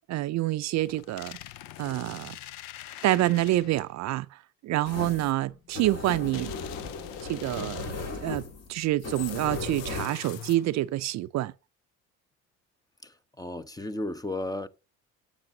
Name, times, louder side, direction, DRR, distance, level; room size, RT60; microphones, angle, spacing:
voice 1, 0.1-1.4 1.8-2.4 3.0-6.5 7.2-11.5, right 16 dB, 55° right, 0.5 m, -27 dB
sound 1, 0.8-3.9 6.3-8.2 9.1-10.9, left 13 dB, 80° left, 0.6 m, -43 dB
sound 2, 4.8-10.0, left 3 dB, 50° left, 2.3 m, -37 dB
voice 2, 13.0-14.7, left 2 dB, 10° left, 0.7 m, -34 dB
11.5 x 7.4 x 2.7 m
supercardioid pair, 85°, 33 cm